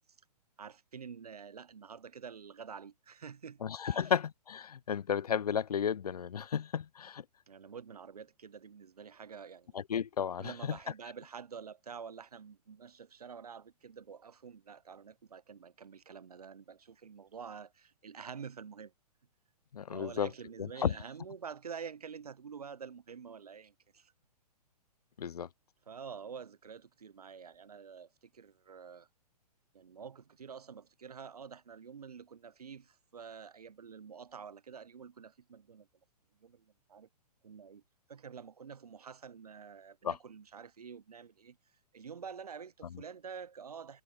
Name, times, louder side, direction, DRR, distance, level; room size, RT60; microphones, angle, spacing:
voice 1, 0.6-4.1 7.5-9.8 10.4-18.9 19.9-24.1 25.9-29.1 29.7-35.9 36.4-37.1 37.4-37.8 38.1-41.6 41.9-44.0, right 6 dB, 65° right, 0.8 m, -48 dB
voice 2, 3.6-7.2 9.7-10.8 19.7-20.3 20.6-21.0 25.2-25.5 40.0-40.2 42.9-43.0, left 8 dB, 70° left, 0.4 m, -33 dB
figure-of-eight pair, 120°, 21 cm